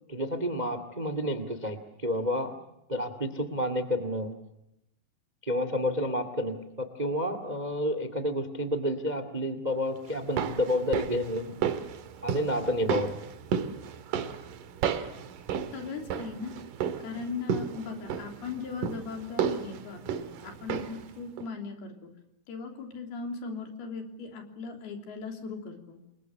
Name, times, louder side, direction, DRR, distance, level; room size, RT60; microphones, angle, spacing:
voice 1, 0.1-2.5 2.9-4.3 5.4-11.6 12.2-13.2, left 1 dB, 45° right, 11 dB, 0.5 m, -30 dB
sound 1, 10.1-21.1 21.4-21.5, right 8 dB, 60° right, 2.6 m, -33 dB
voice 2, 15.7-16.6 17.0-22.1 22.5-26.0, left 5 dB, 65° left, 4 dB, 5.2 m, -38 dB
28.5 x 22.5 x 7.1 m, 0.84 s
omnidirectional pair, 5.0 m